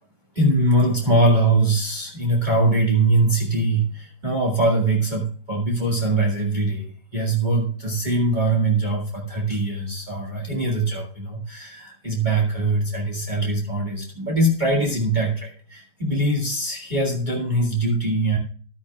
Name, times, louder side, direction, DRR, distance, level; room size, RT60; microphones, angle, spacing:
voice 1, 0.4-6.9 7.1-18.4, right 2 dB, 25° right, -2 dB, 2.0 m, -22 dB
14.5 x 10.5 x 2.3 m, 0.42 s
omnidirectional pair, 1.8 m